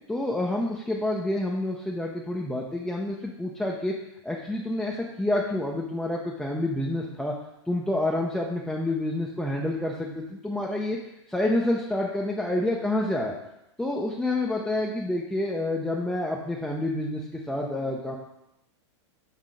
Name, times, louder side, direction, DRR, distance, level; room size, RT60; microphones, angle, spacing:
voice 1, 0.1-4.0 4.2-7.4 7.7-11.0 11.3-13.4 13.8-18.2, left 1 dB, 5° left, -3 dB, 0.5 m, -28 dB
5.8 x 3.6 x 5.0 m, 0.86 s
hypercardioid pair, 135°, 15 cm